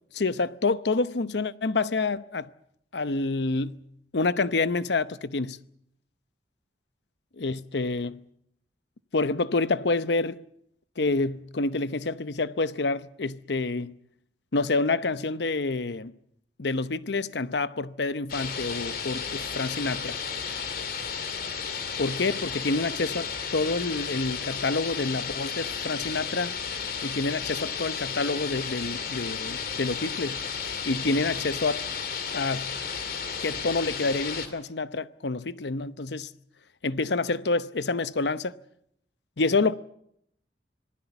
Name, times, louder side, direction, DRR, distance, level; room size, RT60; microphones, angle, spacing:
voice 1, 0.1-2.5 2.9-3.8 4.1-5.6 7.4-8.2 9.1-10.4 11.0-14.0 14.5-16.1 16.6-20.2 22.0-26.6 27.0-30.4 30.9-31.8 32.3-32.7 33.4-36.3 36.8-38.5 39.4-39.8, left 3 dB, 75° left, 0.8 m, -28 dB
sound 1, 18.3-34.5, left 6 dB, 55° left, 2.6 m, -33 dB
26.5 x 19.5 x 7.1 m
head